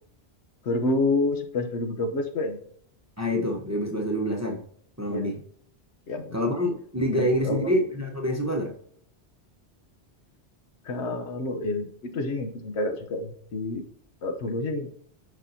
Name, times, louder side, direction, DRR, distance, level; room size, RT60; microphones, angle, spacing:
voice 1, 0.6-2.6 5.1-5.4 6.1-6.4 7.1-7.7 10.8-11.9 12.1-13.8 14.2-14.9, left 2 dB, 80° left, 6 dB, 1.2 m, -28 dB
voice 2, 3.2-4.6 5.0-5.4 6.3-8.7, equal, 15° right, 1 dB, 0.7 m, -26 dB
6.5 x 5.3 x 2.7 m, 0.64 s
omnidirectional pair, 1.1 m